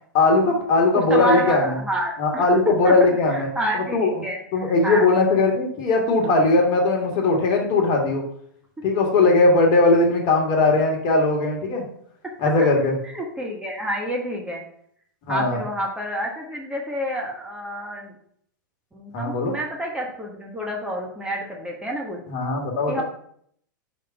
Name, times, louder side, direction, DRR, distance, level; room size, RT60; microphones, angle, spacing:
voice 1, 0.1-1.8 2.2-3.5 3.7-4.1 4.5-8.2 8.8-11.8 12.4-13.0 15.3-15.6 19.1-19.5 22.3-23.0, left 3 dB, 40° left, 1 dB, 1.6 m, -19 dB
voice 2, 1.1-2.9 3.3-5.0 13.0-14.6 15.3-18.1 18.9-22.2 22.9-23.0, equal, 10° right, -1 dB, 1.2 m, -29 dB
5.2 x 3.7 x 5.7 m, 0.65 s
figure-of-eight pair, 100°, 11 cm